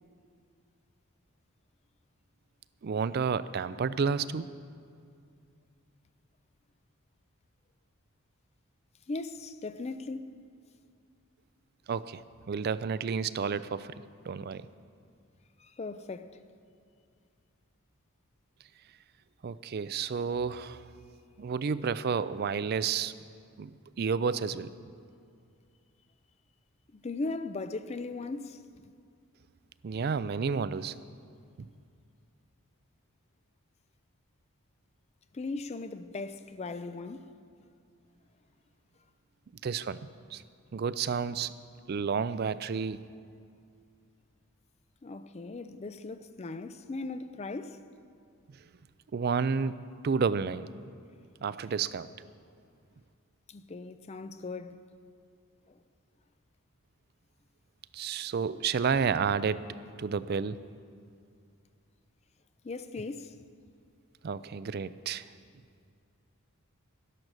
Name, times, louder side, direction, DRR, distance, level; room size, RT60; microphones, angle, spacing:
voice 1, 2.8-4.5 11.9-14.0 14.3-14.7 19.4-20.8 21.4-23.1 23.6-24.7 29.8-30.9 39.6-40.0 40.3-40.4 40.7-41.5 41.9-43.0 49.1-49.8 50.0-50.7 51.4-52.1 57.9-59.7 60.0-60.6 64.2-65.2, right 6 dB, 45° right, 0.3 m, -30 dB
voice 2, 9.1-10.3 15.6-16.4 26.9-28.6 35.3-37.3 45.0-47.8 51.6-51.7 53.5-54.8 55.7-55.8 62.6-63.4, left 3 dB, 30° left, 0.4 m, -38 dB
12.0 x 11.0 x 6.5 m
head